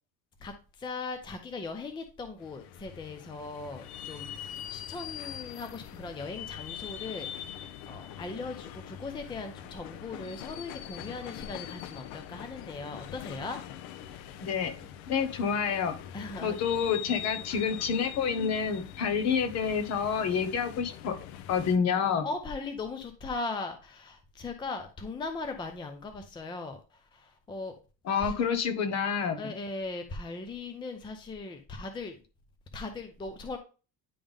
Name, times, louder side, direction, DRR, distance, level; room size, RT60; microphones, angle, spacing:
voice 1, 0.4-13.6 16.1-16.6 22.2-27.8 28.2-28.4 29.4-32.2 32.7-33.6, left 3 dB, 15° left, 6 dB, 0.5 m, -39 dB
sound 1, 2.4-21.8, left 11 dB, 85° left, 0.8 m, -43 dB
voice 2, 14.4-14.7 15.1-15.9 16.4-21.1 21.5-22.3 28.1-29.4, left 6 dB, 45° left, 8 dB, 1.3 m, -28 dB
10.0 x 3.6 x 3.5 m, 0.33 s
cardioid pair, 170°, 35 cm